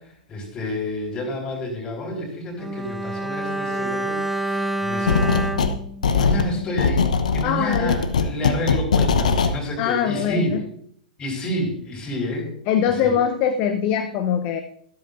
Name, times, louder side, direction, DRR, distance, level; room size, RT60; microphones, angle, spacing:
voice 1, 0.3-5.3 6.1-10.6 11.2-12.5 12.8-13.1, left 1 dB, 20° left, -1 dB, 5.2 m, -29 dB
Bowed string instrument, 2.6-7.0 7.3-7.4, right 1 dB, 5° right, 0.4 m, -28 dB
sound 1, 5.1-5.8 6.0-9.5, left 5 dB, 60° left, 1.0 m, -20 dB
voice 2, 7.4-8.0 9.8-10.6 12.7-14.6, left 8 dB, 35° left, 7 dB, 0.9 m, -22 dB
14.0 x 12.5 x 2.6 m, 0.65 s
figure-of-eight pair, 105°, 4 cm